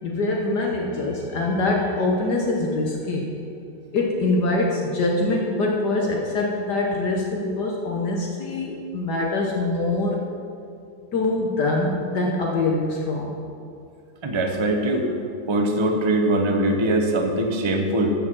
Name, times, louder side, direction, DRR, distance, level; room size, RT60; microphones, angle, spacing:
voice 1, 0.0-3.3 3.9-10.2 11.1-13.4, left 2 dB, 60° left, -1 dB, 1.6 m, -24 dB
voice 2, 14.2-15.0 15.5-18.1, right 1 dB, 30° right, 3 dB, 0.5 m, -22 dB
15.0 x 5.5 x 6.1 m, 2.4 s
omnidirectional pair, 2.1 m